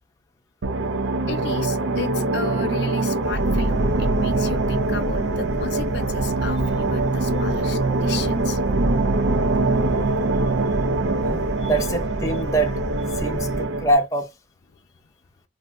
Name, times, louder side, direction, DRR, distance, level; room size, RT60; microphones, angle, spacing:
sound 1, 0.6-13.9, right 2 dB, 85° right, 0.5 m, -23 dB
voice 1, 1.3-8.6 9.9-10.4 11.6-11.7, left 6 dB, 65° left, 0.4 m, -35 dB
sound 2, 3.2-13.7, equal, 40° right, 0.8 m, -33 dB
voice 2, 11.0-12.8 13.1-14.3, right 2 dB, 15° left, 0.6 m, -24 dB
2.6 x 2.1 x 3.5 m
head